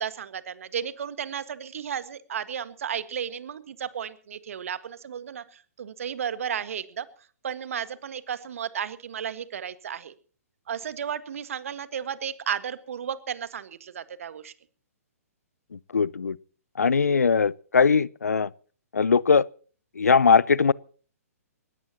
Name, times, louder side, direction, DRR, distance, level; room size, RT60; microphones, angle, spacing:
voice 1, 0.0-7.1 7.4-10.1 10.7-14.5, right 8 dB, 60° right, 1.7 m, -33 dB
voice 2, 15.9-16.4 16.8-18.5 18.9-19.5 20.0-20.7, left 5 dB, 75° left, 0.6 m, -20 dB
21.5 x 19.5 x 3.0 m
figure-of-eight pair, 120°, 8 cm